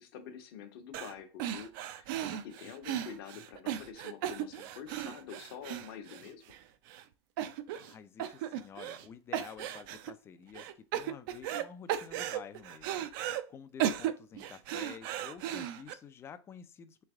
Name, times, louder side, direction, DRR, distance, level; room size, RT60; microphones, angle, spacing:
voice 1, 0.0-6.6, left 8 dB, 60° left, 7 dB, 0.9 m, -47 dB
sound 1, 0.9-1.1 1.4-6.6 6.9-7.0 7.4-7.9 8.2-9.1 9.3-10.1 10.5-11.6 11.9-13.4 13.8-15.9, right 11 dB, 55° right, 0.4 m, -36 dB
voice 2, 7.8-17.0, left 7 dB, 20° left, 12 dB, 0.3 m, -50 dB
3.4 x 3.3 x 3.5 m, 0.37 s
supercardioid pair, 135°, 14 cm